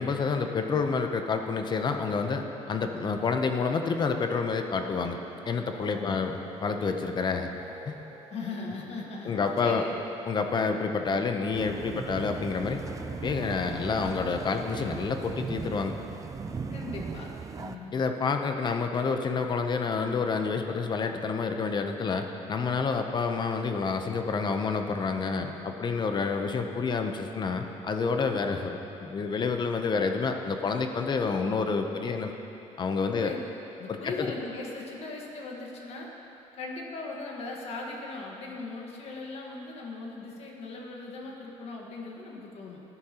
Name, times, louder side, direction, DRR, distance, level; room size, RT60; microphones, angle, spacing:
voice 1, 0.0-5.2 5.5-7.5 7.9-8.0 9.2-9.8 10.3-12.8 13.2-15.9 17.9-32.3 32.8-33.3 33.9-34.0, left 4 dB, 35° left, 5 dB, 0.7 m, -28 dB
sound 1, 4.7-12.1, right 3 dB, 70° right, 1.5 m, -49 dB
voice 2, 5.9-6.3 8.3-10.0 16.7-17.3 17.6-17.9 32.2-32.4 33.1-33.4 33.8-36.1 36.5-42.8, left 3 dB, 60° left, -1 dB, 1.6 m, -39 dB
sound 2, 11.5-17.8, right 5 dB, 25° right, 0.4 m, -38 dB
13.5 x 10.5 x 3.0 m, 2.9 s
cardioid pair, 120°, 12 cm